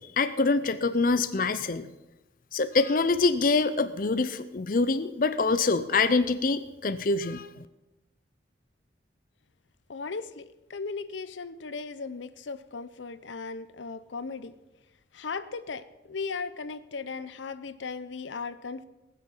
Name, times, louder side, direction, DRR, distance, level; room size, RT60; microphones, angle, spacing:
voice 1, 0.2-1.9 2.5-7.7, left 3 dB, 50° left, 11 dB, 0.5 m, -25 dB
voice 2, 9.9-14.5 15.1-18.8, left 4 dB, 90° left, 14 dB, 0.7 m, -37 dB
19.0 x 6.7 x 7.2 m, 1.0 s
head